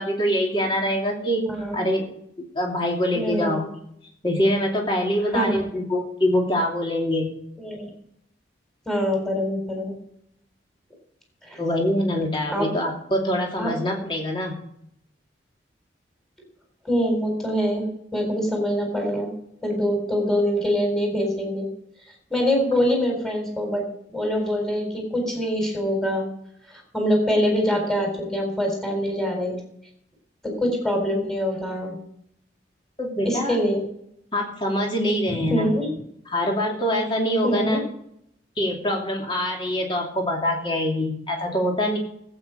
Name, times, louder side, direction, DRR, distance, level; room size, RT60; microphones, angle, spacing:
voice 1, 0.0-2.1 2.5-3.7 4.2-7.3 11.6-14.6 33.0-33.6 34.3-35.7 36.3-37.8 38.6-42.0, equal, 25° left, 0 dB, 2.8 m, -24 dB
voice 2, 3.1-3.7 5.3-5.6 7.6-7.9 8.9-10.0 11.5-11.6 12.5-12.7 13.6-13.8 16.8-19.3 19.6-21.7 22.3-23.9 24.1-26.3 26.9-29.6 30.4-31.9 33.2-33.9 35.4-35.9 37.4-37.8, equal, ahead, 0 dB, 4.1 m, -24 dB
19.0 x 9.0 x 5.2 m, 0.73 s
head